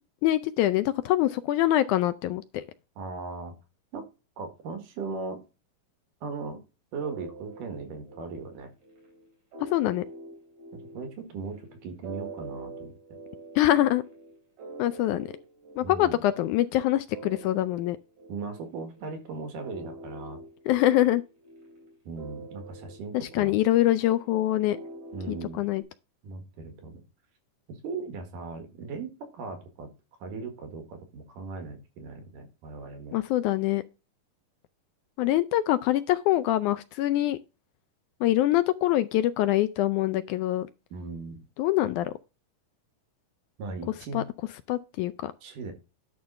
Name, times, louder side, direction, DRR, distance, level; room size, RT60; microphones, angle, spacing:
voice 1, 0.2-2.6 9.6-10.0 13.6-14.0 14.8-15.3 15.8-18.0 20.7-21.2 23.1-24.8 25.3-25.8 33.1-33.8 35.2-37.4 38.2-40.7 41.6-42.1 44.1-44.2 44.7-45.3, left 14 dB, 80° left, 1.9 m, -24 dB
voice 2, 3.0-3.5 3.9-4.1 4.4-5.4 6.2-6.6 6.9-8.7 10.9-13.0 15.8-16.2 18.3-20.4 22.1-23.6 25.1-25.7 26.2-27.0 27.7-29.9 30.2-33.2 40.9-41.4 43.6-44.2 45.4-45.7, right 4 dB, 75° right, 3.5 m, -38 dB
sound 1, 7.0-25.8, right 2 dB, 50° right, 4.8 m, -45 dB
11.0 x 3.7 x 5.7 m
omnidirectional pair, 3.8 m